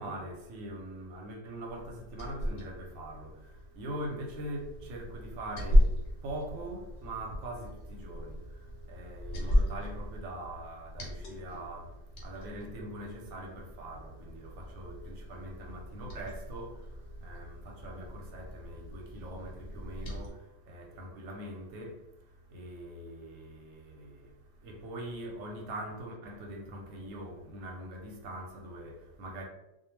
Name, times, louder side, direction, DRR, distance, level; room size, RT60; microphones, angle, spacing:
voice 1, 0.0-29.5, right 1 dB, 90° right, 0.9 m, -43 dB
Liquid, 1.7-20.3, equal, 70° left, 1.0 m, -34 dB
2.3 x 2.2 x 3.0 m
omnidirectional pair, 1.3 m